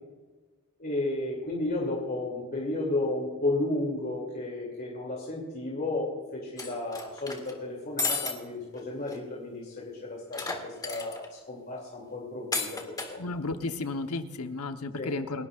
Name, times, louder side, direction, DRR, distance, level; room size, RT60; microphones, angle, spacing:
voice 1, 0.8-13.2 15.0-15.1, left 2 dB, 45° left, -3 dB, 2.8 m, -33 dB
sound 1, 6.6-7.5 8.0-8.3 8.8-8.9 9.1-9.2 10.3-11.3 12.5-13.1, left 3 dB, 15° left, 1.9 m, -32 dB
voice 2, 13.2-15.5, left 3 dB, 80° left, 7 dB, 1.1 m, -33 dB
29.0 x 12.0 x 2.5 m, 1.3 s
head